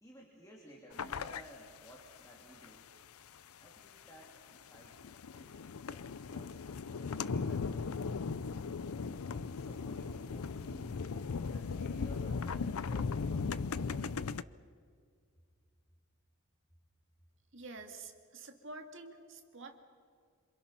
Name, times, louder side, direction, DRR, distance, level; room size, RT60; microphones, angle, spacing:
voice 1, 0.0-2.8 3.6-4.9 5.3-5.6 5.9-8.0 9.0-11.0 11.5-14.4, equal, 15° left, -2 dB, 3.1 m, -55 dB
sound 1, 0.9-1.4 1.9-2.0 2.6-2.7 4.2-4.3 4.6-14.4, left 5 dB, 90° left, 0.6 m, -37 dB
voice 2, 17.5-19.8, right 3 dB, 60° right, 5 dB, 2.3 m, -48 dB
28.0 x 26.5 x 5.9 m, 2.2 s
head